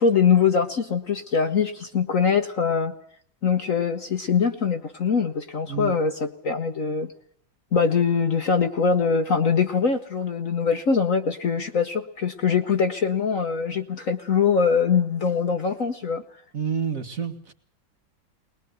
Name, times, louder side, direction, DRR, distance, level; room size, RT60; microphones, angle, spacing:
voice 1, 0.0-2.9 3.4-7.1 7.7-16.2, left 6 dB, 50° left, 8 dB, 1.3 m, -23 dB
voice 2, 16.5-17.5, right 7 dB, 45° right, 6 dB, 2.1 m, -28 dB
21.5 x 21.0 x 8.0 m, 0.63 s
omnidirectional pair, 2.1 m